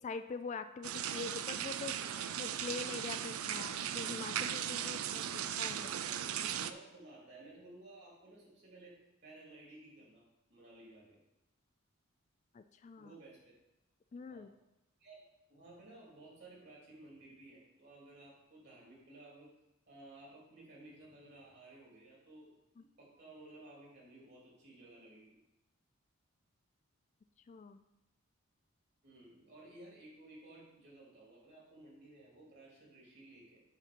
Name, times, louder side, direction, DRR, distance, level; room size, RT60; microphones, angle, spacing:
voice 1, 0.0-5.9 12.5-13.1 14.1-14.5 22.8-22.9 27.5-27.8, left 4 dB, 35° left, 10 dB, 0.3 m, -44 dB
sound 1, 0.8-6.7, right 9 dB, 80° right, 0.4 m, -38 dB
voice 2, 5.7-11.2 13.0-13.6 14.3-14.5 15.0-15.2 15.5-19.5 19.9-22.6 23.0-25.4 29.0-33.6, right 2 dB, 55° right, -4 dB, 3.2 m, -56 dB
8.1 x 4.2 x 6.1 m, 0.92 s
head